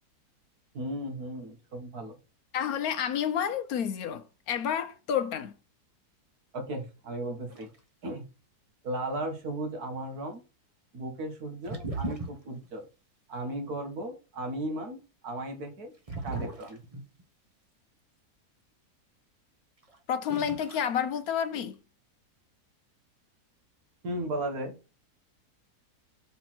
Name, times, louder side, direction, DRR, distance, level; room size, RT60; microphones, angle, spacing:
voice 1, 0.7-2.2 6.5-7.7 8.0-8.3 8.8-10.4 10.9-12.9 13.3-15.9 16.2-16.8 24.0-24.8, right 1 dB, 70° right, 2.1 m, -36 dB
voice 2, 2.5-5.5 20.1-21.8, left 8 dB, 70° left, 1.1 m, -30 dB
sound 1, 7.5-7.8 11.6-12.7 16.1-17.2 19.8-20.0 20.3-20.9 21.1-21.7, right 2 dB, 25° right, 1.1 m, -37 dB
5.2 x 4.3 x 5.9 m
omnidirectional pair, 1.7 m